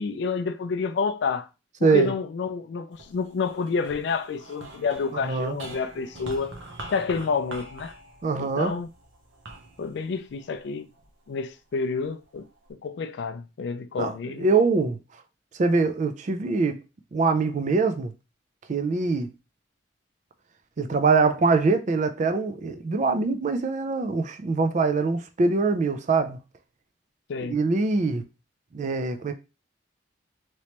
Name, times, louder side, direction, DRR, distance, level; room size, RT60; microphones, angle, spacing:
voice 1, 0.0-1.5 1.8-6.5 6.9-7.9 8.4-8.9 9.8-10.9 11.3-14.5 27.3-27.6, left 4 dB, 65° left, 0.3 m, -29 dB
voice 2, 1.8-2.1 5.1-5.6 8.2-8.7 14.0-15.0 15.6-16.8 17.1-18.1 18.7-19.3 20.8-26.4 27.5-28.2 28.7-29.3, right 4 dB, 40° right, 0.4 m, -23 dB
sound 1, 2.9-11.4 12.0-12.7, right 2 dB, 85° right, 0.8 m, -44 dB
3.2 x 2.9 x 2.9 m
head